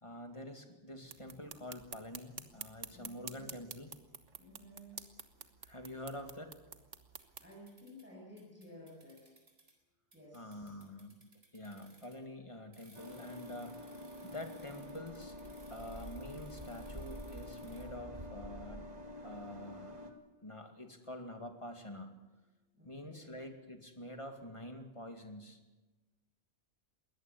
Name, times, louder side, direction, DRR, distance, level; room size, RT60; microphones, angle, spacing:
voice 1, 0.0-3.9 5.6-6.5 10.3-11.1 11.5-15.3 15.7-19.0 19.2-20.1 20.4-22.1 22.8-25.6, left 1 dB, 25° left, 5 dB, 2.3 m, -47 dB
sound 1, 1.0-7.5, right 6 dB, 80° right, 1.6 m, -49 dB
voice 2, 2.9-3.5 4.4-5.0 7.4-9.3 10.1-10.8 22.7-23.4, equal, 10° right, -6 dB, 7.6 m, -54 dB
sound 2, 7.2-8.1 8.4-9.7 10.1-12.3 12.7-17.9, right 2 dB, 60° right, 4.4 m, -63 dB
sound 3, 12.9-20.1, left 1 dB, 35° right, 2.1 m, -47 dB
21.5 x 18.5 x 8.6 m, 1.1 s
omnidirectional pair, 1.2 m